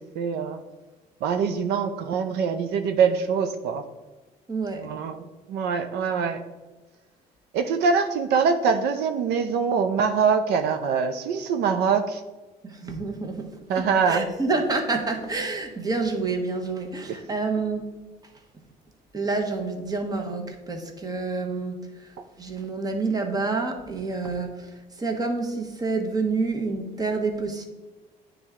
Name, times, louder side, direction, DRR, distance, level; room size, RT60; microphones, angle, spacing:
voice 1, 0.2-0.6 1.2-3.8 4.8-6.4 7.5-12.2 13.7-14.2, right 6 dB, 75° right, 7 dB, 0.5 m, -24 dB
voice 2, 4.5-5.0 12.6-17.9 19.1-27.6, right 3 dB, 20° right, 3 dB, 1.0 m, -28 dB
9.4 x 3.4 x 3.6 m, 1.2 s
cardioid pair, 110°, 17 cm